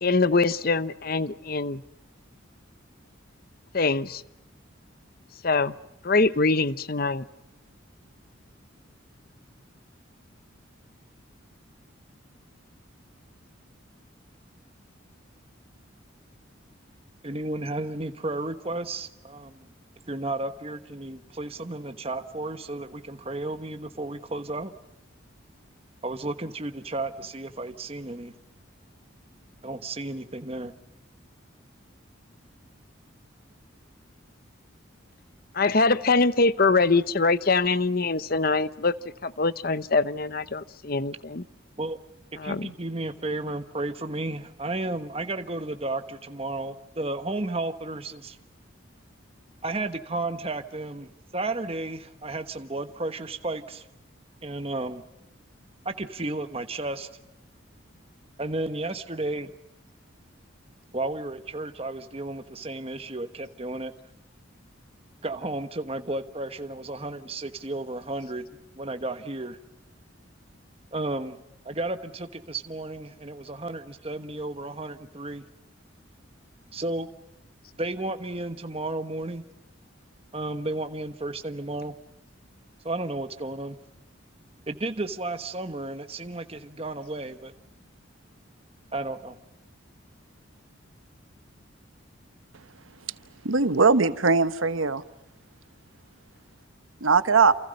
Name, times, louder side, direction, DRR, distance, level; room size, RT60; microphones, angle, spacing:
voice 1, 0.0-1.8 3.7-4.2 5.4-5.7 6.0-7.2 35.5-38.9 39.2-41.4 42.4-42.7, left 3 dB, 50° left, 0.8 m, -23 dB
voice 2, 17.2-19.6 20.1-24.7 26.0-28.3 29.6-30.7 41.8-42.0 42.4-48.4 49.6-53.9 54.4-55.0 55.8-57.1 58.4-59.5 60.9-63.9 65.2-68.5 68.8-69.6 70.9-71.4 71.6-75.5 76.7-77.1 77.8-79.4 80.3-81.9 82.8-83.8 84.7-87.5 88.9-89.4, right 2 dB, 30° right, 1.3 m, -33 dB
voice 3, 93.4-95.0 97.0-97.5, right 4 dB, 85° right, 1.2 m, -20 dB
28.5 x 28.5 x 5.4 m
head